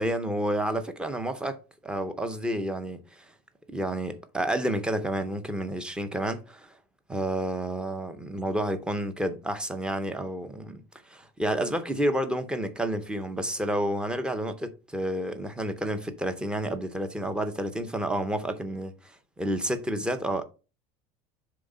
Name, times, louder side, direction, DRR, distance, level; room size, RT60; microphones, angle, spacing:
voice 1, 0.0-3.3 3.7-6.7 7.1-20.4, right 1 dB, 5° right, 0.6 m, -30 dB
7.6 x 3.5 x 5.3 m
cardioid pair, 170°, 19 cm